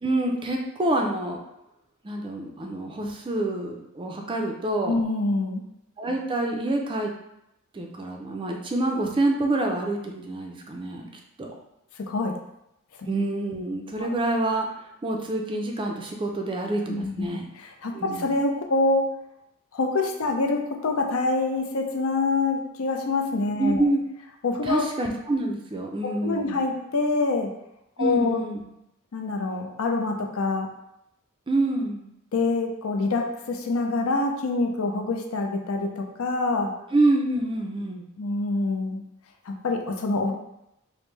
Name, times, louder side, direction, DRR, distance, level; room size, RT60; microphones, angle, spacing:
voice 1, 0.0-1.4 2.0-5.0 6.0-7.1 7.7-11.1 11.4-11.5 13.0-14.7 15.0-17.5 17.9-18.3 23.6-24.0 24.6-26.6 28.0-28.6 31.5-32.1 36.9-38.1, right 2 dB, 25° right, 1 dB, 0.4 m, -27 dB
voice 2, 4.9-5.7 12.0-12.3 14.0-14.1 16.9-19.1 19.7-23.8 24.4-24.9 26.0-27.5 28.0-28.4 29.1-30.7 32.3-36.7 38.2-39.0 39.5-40.3, left 3 dB, 70° left, 3 dB, 0.5 m, -26 dB
5.0 x 2.1 x 3.2 m, 0.83 s
head